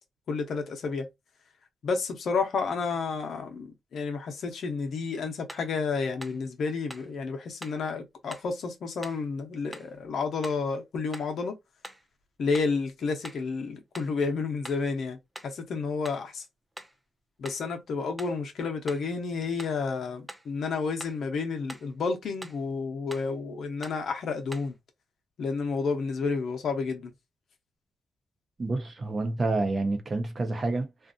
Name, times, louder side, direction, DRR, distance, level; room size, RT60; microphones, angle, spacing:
voice 1, 0.3-1.1 1.8-11.6 12.4-15.2 15.4-16.4 17.4-24.8 25.4-27.1, left 4 dB, 65° left, 0.8 m, -31 dB
sound 1, 5.5-5.7 6.2-6.4 6.9-7.1 7.6-7.8 8.3-8.5 9.0-9.3 9.7-10.0 10.4-10.7 11.1-11.4 11.8-12.1 12.5-12.8 13.2-13.5 13.9-14.2 14.6-14.9 15.4-15.6 16.0-16.3 16.8-17.0 17.5-17.7 18.2-18.4 18.9-19.1 19.6-19.8 20.3-20.5 21.0-21.2 21.7-21.9 22.4-22.7 23.1-23.3 23.8-24.1 24.5-24.8, right 1 dB, 10° right, 0.5 m, -45 dB
voice 2, 28.6-31.1, right 2 dB, 35° right, 0.8 m, -29 dB
2.6 x 2.4 x 2.5 m
cardioid pair, 90°, 0 cm